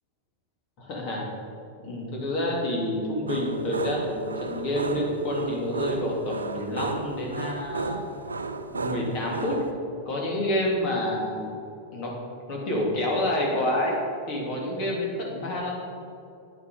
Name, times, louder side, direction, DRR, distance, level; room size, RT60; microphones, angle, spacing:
voice 1, 0.8-1.2 1.8-8.3 8.7-9.6 10.0-11.5 11.9-12.2 12.5-14.0 14.3-15.7, left 1 dB, 40° left, -2 dB, 2.9 m, -28 dB
sound 1, 3.3-9.7, right 3 dB, 75° right, 0.6 m, -33 dB
9.3 x 8.8 x 5.2 m, 2.6 s
figure-of-eight pair, 90°, 0 cm